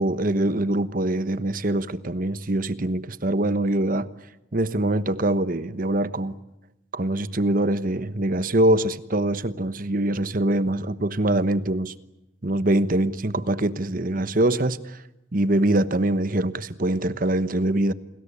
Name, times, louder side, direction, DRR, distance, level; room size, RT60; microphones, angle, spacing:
voice 1, 0.0-4.1 4.5-6.4 6.9-11.9 12.4-15.0 15.3-17.9, right 1 dB, 45° right, 1.2 m, -23 dB
29.0 x 20.5 x 8.5 m
head